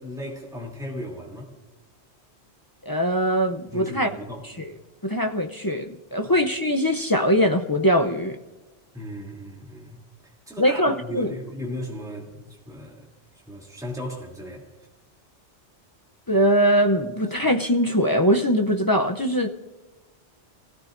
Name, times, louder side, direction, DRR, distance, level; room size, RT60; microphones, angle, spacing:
voice 1, 0.0-1.5 3.7-4.4 8.9-10.0 10.5-13.1 13.5-14.7, equal, 5° right, 2.8 m, -36 dB
voice 2, 2.8-4.1 4.6-4.7 5.0-8.4 10.6-11.3 16.3-19.5, equal, 25° left, 0.5 m, -22 dB
29.5 x 17.0 x 2.6 m
omnidirectional pair, 1.2 m